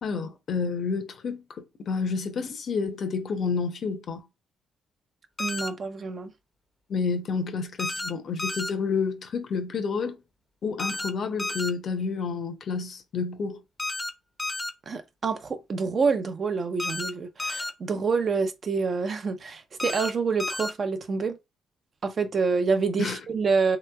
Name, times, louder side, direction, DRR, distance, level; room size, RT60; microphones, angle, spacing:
voice 1, 0.0-4.2 6.9-10.2 10.6-13.6 23.0-23.2, left 5 dB, 55° left, 0.7 m, -29 dB
sound 1, 5.4-5.7 7.8-8.1 8.4-8.7 10.8-11.1 11.4-11.7 13.8-14.1 14.4-14.7 16.8-17.1 17.4-17.7 19.8-20.1 20.4-20.7, left 2 dB, 15° left, 0.6 m, -31 dB
voice 2, 5.4-6.3 14.9-21.4 22.0-23.8, right 4 dB, 45° right, 0.6 m, -27 dB
3.3 x 2.9 x 2.3 m
cardioid pair, 90°, 0 cm